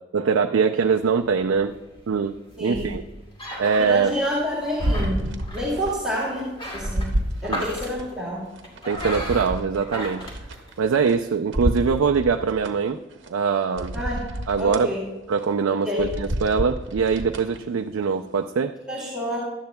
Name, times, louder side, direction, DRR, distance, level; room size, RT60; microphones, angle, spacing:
voice 1, 0.1-1.8 2.1-2.3 2.6-3.0 3.6-4.1 7.5-7.6 8.8-10.3 10.8-13.0 13.3-14.0 14.5-14.9 15.3-18.7, right 5 dB, 75° right, 5 dB, 0.4 m, -22 dB
sound 1, 0.9-11.2, equal, 25° left, 2.4 m, -37 dB
voice 2, 2.6-2.9 3.8-7.1 7.4-8.4 13.9-14.2 14.6-15.0 15.8-16.1 18.9-19.4, equal, 5° right, -8 dB, 2.4 m, -28 dB
sound 2, 4.8-6.0 6.4-8.0 8.6-11.1 11.5-12.7 13.2-13.3 13.8-14.9 15.3-15.5 15.9-17.6 18.0-18.1, right 1 dB, 60° right, 1.0 m, -29 dB
17.5 x 12.0 x 2.2 m, 1.1 s
head